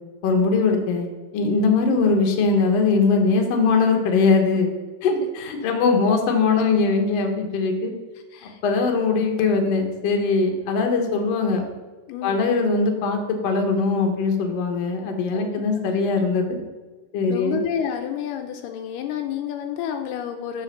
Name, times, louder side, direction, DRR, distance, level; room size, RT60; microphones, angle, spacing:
voice 1, 0.2-4.7 5.0-7.9 8.6-11.6 12.2-16.6 17.1-17.6, left 4 dB, 65° left, 3 dB, 1.6 m, -21 dB
voice 2, 12.1-12.5 15.3-15.6 17.3-20.6, left 9 dB, 80° left, 5 dB, 2.1 m, -30 dB
7.0 x 4.3 x 6.5 m, 1.3 s
omnidirectional pair, 3.9 m